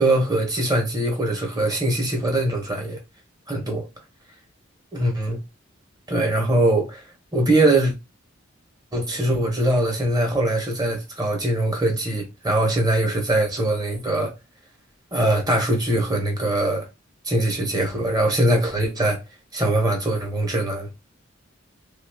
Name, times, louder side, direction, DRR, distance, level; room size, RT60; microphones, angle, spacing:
voice 1, 0.0-3.0 3.5-3.8 4.9-5.4 6.1-7.0 7.3-7.9 8.9-14.3 15.1-16.9 17.2-19.2 19.5-21.0, right 1 dB, 20° right, 0.8 m, -22 dB
2.9 x 2.3 x 3.2 m
head